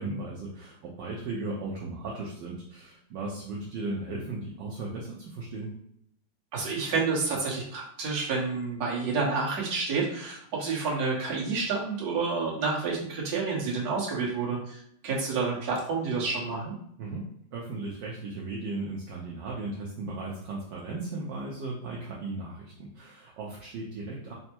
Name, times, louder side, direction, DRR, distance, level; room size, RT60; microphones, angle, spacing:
voice 1, 0.0-5.7 17.0-24.3, right 2 dB, 70° right, -3 dB, 1.2 m, -36 dB
voice 2, 6.5-16.7, right 4 dB, 50° right, -4 dB, 1.4 m, -29 dB
4.4 x 2.0 x 4.3 m, 0.70 s
omnidirectional pair, 2.4 m